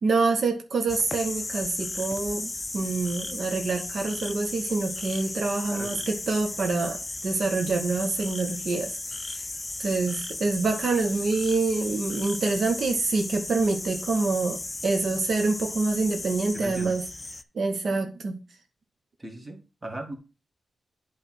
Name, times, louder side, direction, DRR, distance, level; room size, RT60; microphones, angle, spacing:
voice 1, 0.0-9.4 9.8-17.0 17.5-18.4, right 3 dB, 65° right, 1.0 m, -26 dB
sound 1, 0.9-17.4, left 2 dB, 25° left, 0.5 m, -35 dB
voice 2, 5.7-6.0 16.5-17.0 19.2-20.2, right 1 dB, 20° right, 1.8 m, -38 dB
8.2 x 3.4 x 6.0 m
cardioid pair, 80°, 0 cm